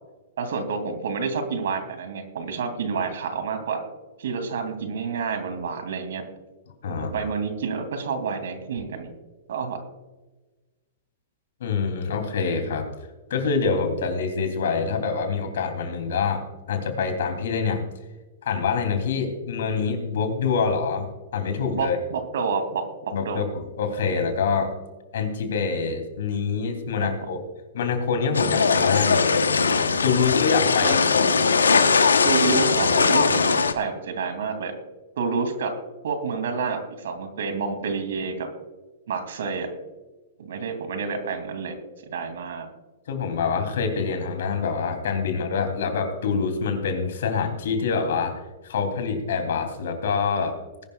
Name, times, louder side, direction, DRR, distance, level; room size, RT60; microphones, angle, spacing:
voice 1, 0.4-3.8 4.2-6.2 6.9-9.1 9.5-9.8 21.7-23.5 27.0-27.1 30.8-30.9 32.2-34.7 35.2-35.7 36.0-38.5 39.1-39.7 40.4-42.7, right 5 dB, 70° right, 7 dB, 2.7 m, -29 dB
voice 2, 6.8-7.3 11.6-12.9 13.3-17.8 18.4-22.0 23.1-24.7 25.1-27.4 27.7-29.3 30.0-31.3 43.1-48.3 48.6-50.6, left 5 dB, 70° left, 6 dB, 3.1 m, -26 dB
sound 1, 28.3-33.7, left 5 dB, 90° left, 1.0 m, -20 dB
20.5 x 11.5 x 2.4 m, 1.2 s
hypercardioid pair, 115°, 0 cm